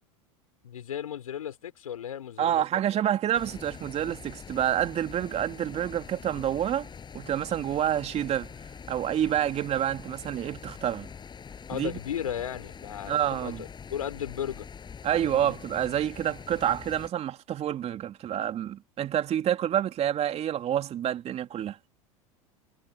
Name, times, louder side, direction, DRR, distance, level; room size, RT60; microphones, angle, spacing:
voice 1, 0.6-2.6 11.7-14.7 15.2-15.6, left 9 dB, 85° left, 4.7 m, -35 dB
voice 2, 2.4-6.9 7.1-8.5 8.9-11.1 11.7-11.9 13.1-13.6 15.0-21.8, right 10 dB, 35° right, 2.7 m, -28 dB
sound 1, 3.3-17.1, left 6 dB, 25° left, 7.0 m, -44 dB
hypercardioid pair, 90°, 18 cm